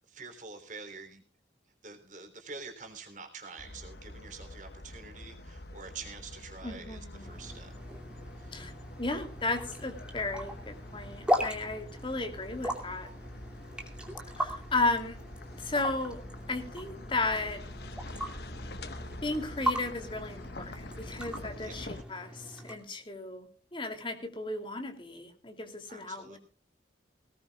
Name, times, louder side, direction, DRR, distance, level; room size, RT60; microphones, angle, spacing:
voice 1, 0.1-1.2 1.8-7.9 8.4-8.6 21.6-22.0 25.9-26.4, right 4 dB, 45° right, 6 dB, 3.3 m, -47 dB
sound 1, 3.6-22.0, left 1 dB, 65° left, 1.3 m, -46 dB
voice 2, 6.6-7.4 8.5-8.7 9.0-13.1 14.4-15.2 15.6-17.6 19.2-26.4, left 2 dB, 30° left, 5 dB, 2.8 m, -34 dB
sound 2, 7.2-22.8, equal, 5° right, 2.5 m, -38 dB
20.0 x 18.5 x 2.3 m, 0.40 s
head